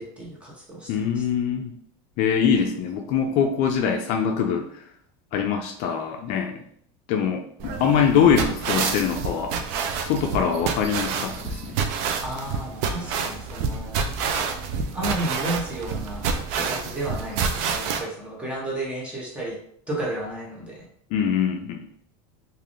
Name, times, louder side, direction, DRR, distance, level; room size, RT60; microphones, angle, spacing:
voice 1, 0.0-1.2 7.9-8.0 12.2-14.0 14.9-16.3 16.6-19.6 19.9-20.8, right 1 dB, 10° right, -4 dB, 0.8 m, -32 dB
voice 2, 0.9-1.8 2.2-4.8 5.3-6.5 7.1-9.5 10.0-11.8 21.1-21.8, left 7 dB, 50° left, 3 dB, 0.4 m, -23 dB
sound 1, 7.6-18.0, right 5 dB, 60° right, 0.4 m, -28 dB
3.3 x 2.5 x 2.5 m, 0.65 s
cardioid pair, 150°, 15 cm